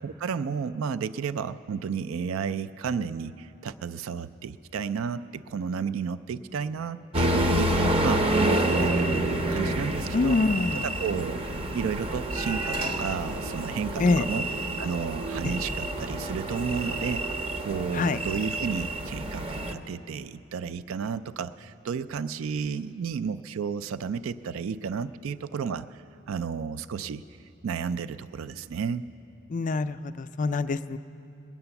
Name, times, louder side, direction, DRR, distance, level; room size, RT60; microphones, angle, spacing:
voice 1, 0.0-7.7 8.0-10.4 10.8-11.5 11.7-14.4 14.8-27.2 27.6-29.1, right 6 dB, 70° right, 15 dB, 0.3 m, -32 dB
sound 1, 7.1-19.7, right 1 dB, 25° right, 0.7 m, -28 dB
voice 2, 7.5-7.9 10.1-10.8 14.0-14.2 15.4-15.6 17.9-18.2 29.5-31.0, left 3 dB, 40° left, 12 dB, 0.4 m, -26 dB
Sliding door, 9.6-13.7 14.2-14.3, right 1 dB, 50° right, 1.1 m, -44 dB
20.5 x 9.7 x 6.9 m, 2.6 s
head